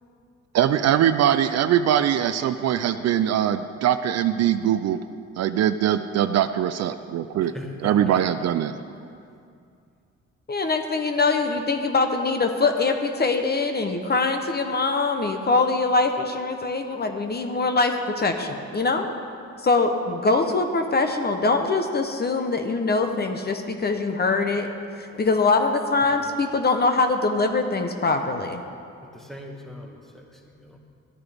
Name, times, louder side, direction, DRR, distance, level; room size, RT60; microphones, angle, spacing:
voice 1, 0.5-5.0 5.4-7.5 7.8-8.7, right 10 dB, 60° right, 11 dB, 0.4 m, -22 dB
voice 2, 7.4-8.2 25.1-25.3 26.0-26.3 29.0-30.8, left 1 dB, ahead, 1 dB, 1.4 m, -41 dB
voice 3, 10.5-19.1 19.6-24.7 25.0-28.6, left 3 dB, 35° left, 6 dB, 0.8 m, -23 dB
13.5 x 9.7 x 3.5 m, 2.4 s
cardioid pair, 90°, 30 cm